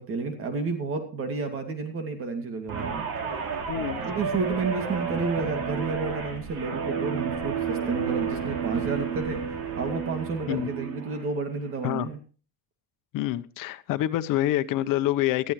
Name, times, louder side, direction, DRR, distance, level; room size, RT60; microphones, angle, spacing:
voice 1, 0.0-3.1 4.1-12.2, right 4 dB, 40° right, 6 dB, 2.5 m, -31 dB
Guitar, 2.7-11.3 11.7-12.0, right 6 dB, 85° right, 4.2 m, -32 dB
sound 1, 2.8-10.0, right 6 dB, 55° right, 1.9 m, -42 dB
voice 2, 3.7-4.0 10.5-10.7 11.8-12.1 13.1-15.5, left 14 dB, 70° left, 11 dB, 1.0 m, -26 dB
19.0 x 14.0 x 3.2 m, 0.38 s
cardioid pair, 175°, 34 cm